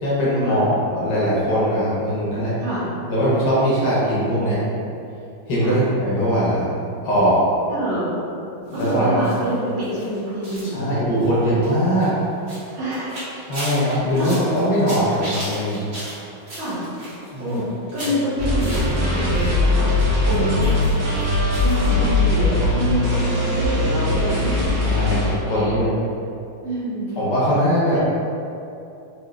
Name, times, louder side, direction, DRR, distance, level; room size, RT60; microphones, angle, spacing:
voice 1, 0.0-2.5 3.1-4.6 5.5-6.6 7.0-7.4 8.7-9.2 10.7-12.1 13.5-15.8 17.3-17.6 24.8-25.9 27.2-28.0, equal, 65° left, -8 dB, 1.2 m, -20 dB
voice 2, 7.7-8.2 8.7-11.2 12.7-13.2 13.8-14.4 16.5-16.8 17.4-19.9 20.3-20.8 21.6-24.6 25.5-25.7 26.6-27.2, right 1 dB, 75° right, -9 dB, 1.7 m, -26 dB
sound 1, 8.7-19.5 19.8-21.9 22.2-22.3 22.6-22.7, equal, 50° right, 1.4 m, -37 dB
sound 2, 18.4-25.3, left 2 dB, 90° right, 1.6 m, -20 dB
3.9 x 2.7 x 2.2 m, 2.7 s
omnidirectional pair, 2.2 m